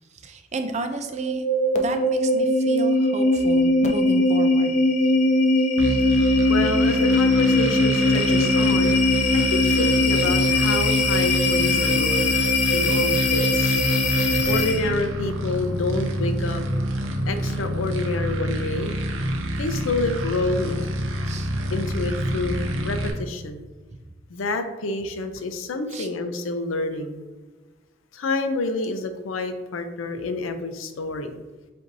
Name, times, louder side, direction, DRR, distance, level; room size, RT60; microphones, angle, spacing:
voice 1, 0.1-1.5 1.7-4.7 21.2-21.6 25.9-26.1, right 2 dB, 35° right, 6 dB, 0.4 m, -32 dB
sound 1, 1.1-15.0, left 2 dB, 35° left, 0.4 m, -21 dB
sound 2, 5.8-23.1, right 1 dB, 80° right, 0.7 m, -27 dB
voice 2, 6.5-12.3 12.7-13.8 14.5-16.6 17.3-18.9 19.6-20.8 21.7-23.6 24.3-27.2 28.1-31.4, left 2 dB, 85° left, 8 dB, 0.5 m, -28 dB
7.5 x 2.7 x 2.6 m, 1.3 s
head